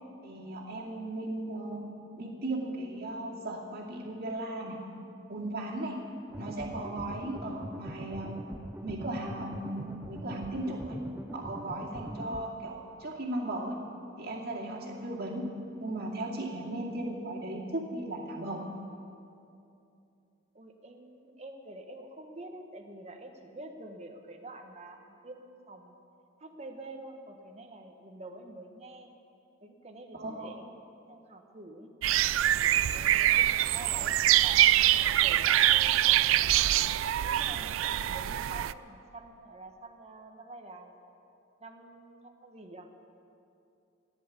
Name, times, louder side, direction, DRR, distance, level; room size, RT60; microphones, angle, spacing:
voice 1, 0.2-1.8 2.2-4.8 5.3-6.0 6.4-8.4 8.8-11.0 11.3-13.8 14.2-15.4 15.8-18.6 30.1-30.5, right 1 dB, 50° right, -2 dB, 2.4 m, -36 dB
sound 1, 6.3-12.4, right 1 dB, 10° right, 0.4 m, -42 dB
voice 2, 20.5-26.0 26.4-29.1 29.6-30.8 31.1-31.9 32.4-36.6 37.2-40.9 41.6-42.9, right 2 dB, 35° right, 4 dB, 1.3 m, -47 dB
sound 2, 32.0-38.7, right 13 dB, 85° right, 0.3 m, -24 dB
15.0 x 10.5 x 8.4 m, 2.7 s
head